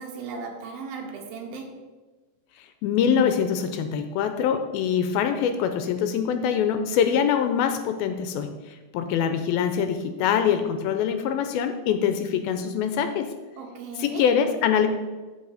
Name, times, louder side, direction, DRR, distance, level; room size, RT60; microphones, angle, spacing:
voice 1, 0.0-1.8 13.6-14.3, right 4 dB, 75° right, 2 dB, 2.9 m, -36 dB
voice 2, 2.6-13.3 14.0-14.9, left 8 dB, 80° left, 8 dB, 2.3 m, -24 dB
13.5 x 4.9 x 4.0 m, 1.3 s
omnidirectional pair, 4.5 m